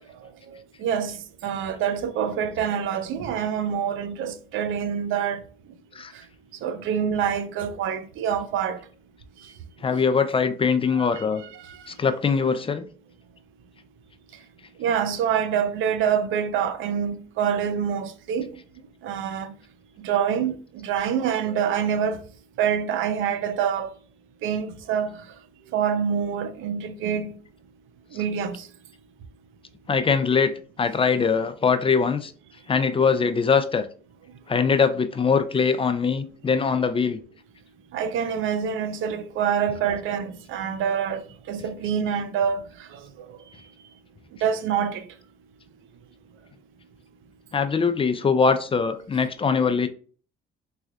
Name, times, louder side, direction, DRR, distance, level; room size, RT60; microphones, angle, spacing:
voice 1, 0.8-1.2 1.4-5.4 6.6-8.8 10.9-11.2 11.7-11.8 14.8-18.5 19.0-19.5 20.0-22.2 22.6-23.9 24.4-25.1 25.7-27.3 28.1-28.6 37.9-41.2 41.5-42.6 44.4-45.0, right 8 dB, 85° right, 0.5 m, -26 dB
voice 2, 9.8-11.4 11.9-12.8 29.9-30.5 30.8-32.3 32.7-33.9 34.5-37.2 47.5-49.9, left 5 dB, 25° left, 0.4 m, -22 dB
3.6 x 3.3 x 2.3 m
cardioid pair, 90°, 20 cm